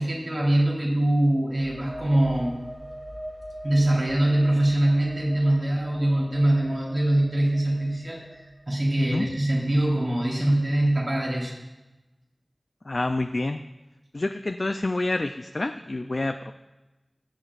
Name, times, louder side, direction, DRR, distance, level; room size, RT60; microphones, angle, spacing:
voice 1, 0.0-2.6 3.6-11.6, right 1 dB, 55° right, -4 dB, 3.7 m, -23 dB
sound 1, 1.4-9.0, equal, 30° right, 3.3 m, -42 dB
voice 2, 12.9-13.6 14.1-16.5, left 2 dB, 55° left, 6 dB, 0.4 m, -28 dB
20.0 x 7.8 x 2.5 m, 1.0 s
wide cardioid pair, 55°, 0 cm